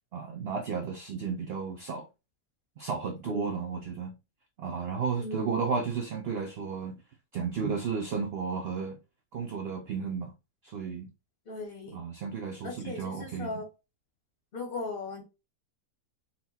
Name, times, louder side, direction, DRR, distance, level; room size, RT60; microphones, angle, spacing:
voice 1, 0.1-2.1 2.8-4.2 4.6-7.0 7.3-9.0 9.3-10.3 10.6-11.1 11.9-13.5, right 5 dB, 90° right, 0.5 m, -33 dB
voice 2, 5.2-5.7 11.5-12.0 12.6-13.7 14.5-15.2, left 2 dB, 45° left, 0.8 m, -37 dB
4.2 x 2.1 x 4.1 m
omnidirectional pair, 1.6 m